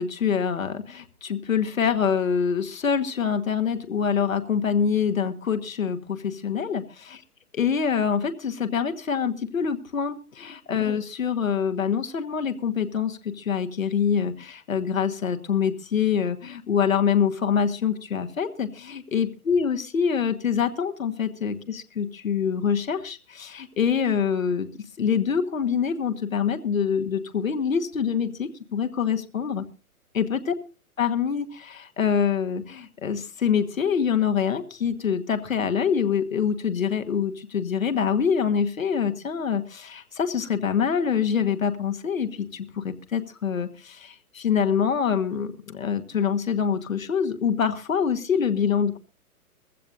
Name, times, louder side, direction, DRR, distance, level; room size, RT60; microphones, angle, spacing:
voice 1, 0.0-7.2 7.6-24.7 25.0-29.6 30.1-30.5 31.0-49.0, left 7 dB, 65° left, 8 dB, 1.5 m, -25 dB
21.5 x 15.0 x 2.6 m, 0.32 s
figure-of-eight pair, 120°, 44 cm